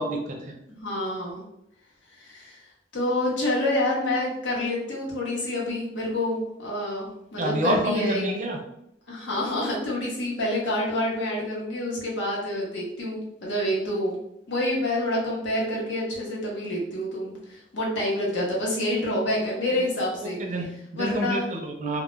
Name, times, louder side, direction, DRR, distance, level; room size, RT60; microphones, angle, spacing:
voice 1, 0.0-0.5 7.4-8.6 20.2-22.0, right 1 dB, 40° right, 2 dB, 0.4 m, -28 dB
voice 2, 0.7-1.4 2.2-2.6 2.9-8.2 9.1-14.1 14.5-20.4 20.9-21.5, left 1 dB, 85° left, -4 dB, 0.9 m, -27 dB
2.2 x 2.1 x 3.0 m, 0.81 s
head